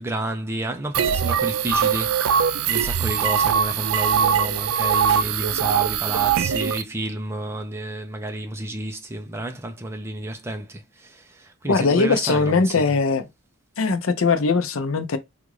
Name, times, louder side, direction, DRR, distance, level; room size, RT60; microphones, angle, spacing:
voice 1, 0.0-13.0, right 1 dB, 10° right, 0.4 m, -31 dB
sound 1, 0.9-6.8, right 8 dB, 85° right, 0.4 m, -21 dB
voice 2, 11.6-13.3 13.8-15.2, left 4 dB, 70° left, 0.6 m, -20 dB
3.6 x 2.5 x 3.1 m
head